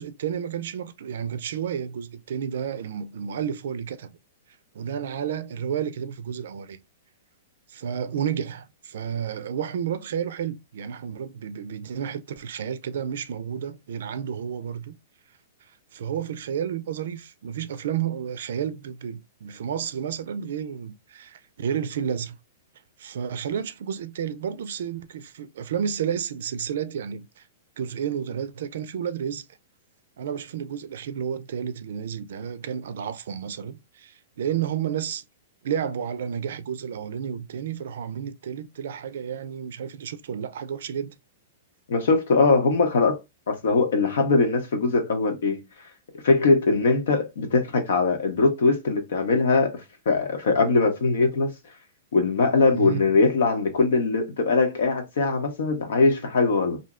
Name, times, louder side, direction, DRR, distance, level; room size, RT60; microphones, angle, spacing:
voice 1, 0.0-4.2 4.7-6.8 7.7-15.0 15.9-22.4 23.0-27.4 27.8-29.4 30.2-35.2 35.6-41.1 52.7-53.1, right 8 dB, 70° right, 0.4 m, -31 dB
voice 2, 41.9-43.2 43.5-45.6 46.2-51.5 52.1-56.8, left 3 dB, 75° left, 1.0 m, -21 dB
2.6 x 2.1 x 3.6 m
hypercardioid pair, 160°, 0 cm